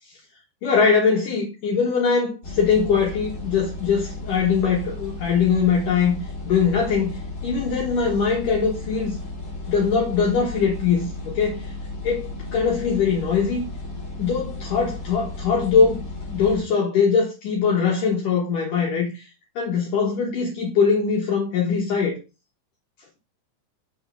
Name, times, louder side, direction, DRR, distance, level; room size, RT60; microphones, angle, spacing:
voice 1, 0.6-9.2 9.7-11.7 12.0-13.7 14.2-16.0 16.3-19.3 19.6-22.2, left 6 dB, 65° left, 2.4 m, -22 dB
sound 1, 2.4-16.6, left 2 dB, 40° left, 2.1 m, -34 dB
6.2 x 3.6 x 5.5 m
omnidirectional pair, 4.9 m